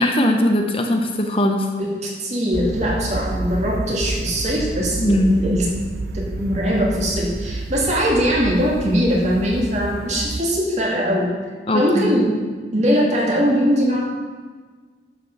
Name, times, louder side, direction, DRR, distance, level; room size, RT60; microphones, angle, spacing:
voice 1, 0.0-1.7 5.0-5.4 11.7-12.1, left 1 dB, 30° left, 3 dB, 0.8 m, -19 dB
voice 2, 1.8-5.7 6.1-11.3 11.7-12.3 12.7-14.0, equal, 40° right, -3 dB, 2.5 m, -21 dB
sound 1, 2.5-10.4, right 2 dB, 60° right, 0.6 m, -29 dB
11.0 x 5.8 x 7.2 m, 1.4 s
head